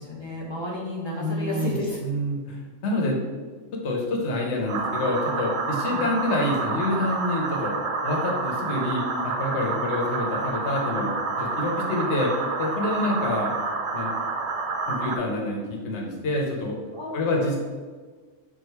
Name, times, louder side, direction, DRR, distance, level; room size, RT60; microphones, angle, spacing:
voice 1, 0.0-2.2 5.9-6.1 16.9-17.6, left 1 dB, 30° left, -4 dB, 0.6 m, -32 dB
voice 2, 1.2-3.2 3.8-7.7 8.0-12.3 12.6-13.5 13.9-14.1 14.9-16.8 17.1-17.6, left 1 dB, 60° left, -1 dB, 1.1 m, -27 dB
sound 1, 4.7-15.2, right 4 dB, 65° right, 0.8 m, -29 dB
4.8 x 2.5 x 4.5 m, 1.5 s
omnidirectional pair, 1.4 m